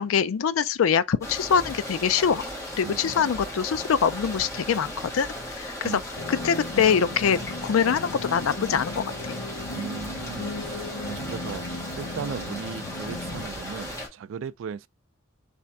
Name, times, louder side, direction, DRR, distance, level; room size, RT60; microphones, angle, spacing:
voice 1, 0.0-2.5 2.8-5.3 5.6-5.7 6.3-9.4, left 7 dB, 90° left, 0.4 m, -24 dB
sound 1, 1.2-14.1, left 1 dB, 15° left, 1.7 m, -36 dB
voice 2, 2.8-3.3 5.8-6.1 9.7-14.9, right 6 dB, 65° right, 0.3 m, -37 dB
sound 2, 6.2-13.4, left 2 dB, 70° left, 0.8 m, -37 dB
3.5 x 3.4 x 4.1 m
head